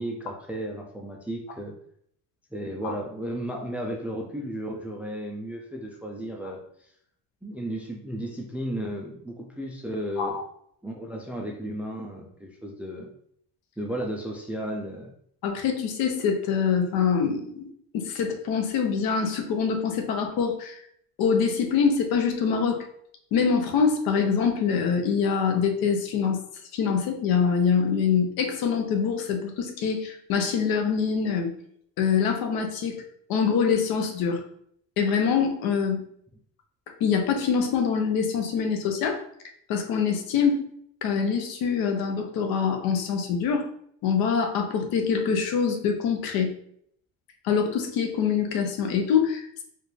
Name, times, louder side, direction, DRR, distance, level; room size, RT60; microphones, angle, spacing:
voice 1, 0.0-1.8 2.5-6.6 7.4-10.4 10.8-13.1 13.8-15.1, right 1 dB, 5° right, 0 dB, 0.3 m, -34 dB
voice 2, 15.4-20.8 21.2-22.8 23.3-26.4 26.7-31.5 32.0-33.0 33.3-34.4 35.0-36.0 37.0-39.2 39.7-40.7 41.0-43.7 44.0-46.5 47.4-49.6, left 6 dB, 75° left, 4 dB, 0.9 m, -24 dB
4.4 x 2.5 x 3.2 m, 0.66 s
cardioid pair, 145°, 36 cm